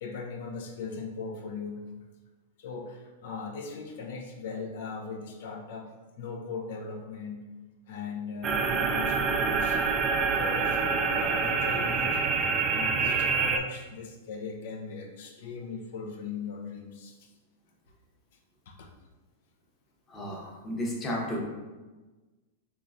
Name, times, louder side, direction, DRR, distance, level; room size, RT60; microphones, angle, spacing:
voice 1, 0.0-1.9 2.6-5.9 6.2-7.5 7.9-9.8 10.3-17.3 18.7-18.9, left 4 dB, 65° left, 1 dB, 0.6 m, -39 dB
sound 1, 8.4-13.6, right 5 dB, 30° right, 0.3 m, -26 dB
voice 2, 20.1-21.4, equal, 25° left, -3 dB, 1.0 m, -33 dB
3.8 x 3.0 x 2.5 m, 1.2 s
hypercardioid pair, 115°, 0 cm